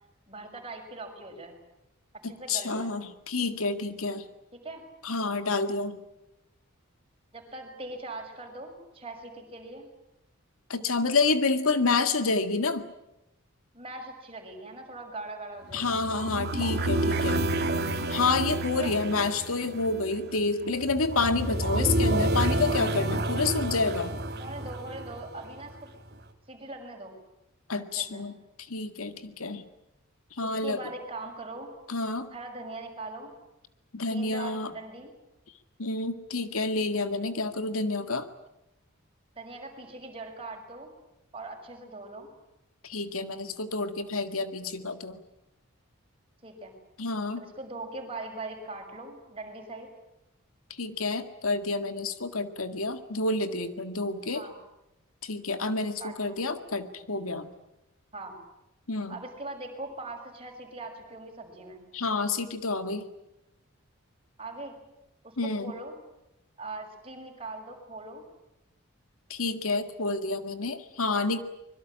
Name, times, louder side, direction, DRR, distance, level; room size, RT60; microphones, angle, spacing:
voice 1, 0.3-1.6 2.3-2.9 4.6-4.8 7.3-9.9 13.7-16.0 18.8-18.9 24.4-25.9 26.5-27.2 28.0-28.2 30.6-31.7 32.3-33.3 34.1-35.1 39.4-40.9 41.3-42.3 46.4-46.8 47.4-49.9 54.3-54.5 56.0-56.4 58.1-58.3 59.1-61.8 64.4-64.8 65.2-66.0 66.6-68.3, right 2 dB, 25° right, 2 dB, 6.1 m, -41 dB
voice 2, 2.2-4.3 5.0-6.0 10.7-12.9 15.7-17.5 18.1-24.1 27.7-29.6 30.3-30.8 31.9-32.3 33.9-34.7 35.8-38.3 42.8-45.2 47.0-47.4 50.7-54.4 55.2-57.5 58.9-59.2 61.9-63.1 65.4-65.7 69.3-71.4, left 3 dB, 80° left, 9 dB, 2.0 m, -29 dB
sound 1, 15.7-25.8, right 1 dB, 50° right, 2.2 m, -29 dB
25.0 x 22.5 x 8.8 m, 0.89 s
head